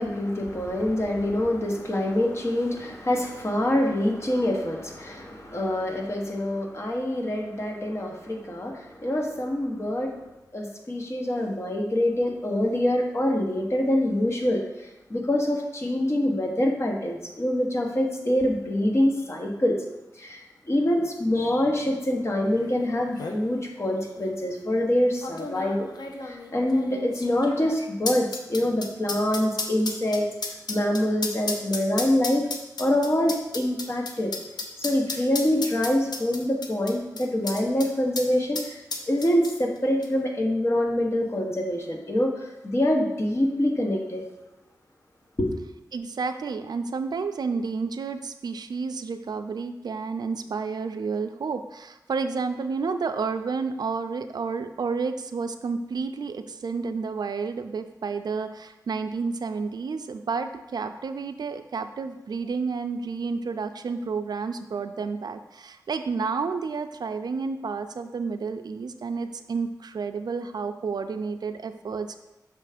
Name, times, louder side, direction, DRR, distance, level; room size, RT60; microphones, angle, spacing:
voice 1, 0.0-10.2 10.5-19.8 20.2-25.9 26.2-30.3 30.7-32.5 32.8-34.3 34.8-38.8 39.1-44.2 45.4-45.5, left 1 dB, 40° left, 1 dB, 1.0 m, -25 dB
sound 1, 22.7-22.8 23.0-23.4 24.2-24.3 25.2-37.9 38.2-38.3 38.5-39.8 40.0-40.1, left 3 dB, 85° left, 0.6 m, -33 dB
voice 2, 45.9-72.2, right 4 dB, 75° right, 8 dB, 0.4 m, -30 dB
6.1 x 3.3 x 5.0 m, 0.96 s
wide cardioid pair, 70°, 7 cm